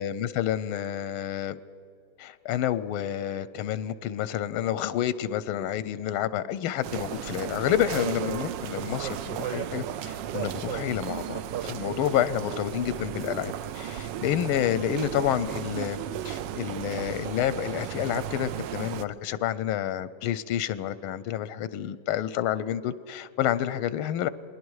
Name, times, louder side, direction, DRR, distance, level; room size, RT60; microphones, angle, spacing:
voice 1, 0.0-1.6 2.2-24.3, left 11 dB, 90° left, 16 dB, 1.5 m, -29 dB
sound 1, 6.8-19.1, right 10 dB, 70° right, 1.2 m, -34 dB
28.0 x 20.0 x 4.8 m, 2.6 s
omnidirectional pair, 2.3 m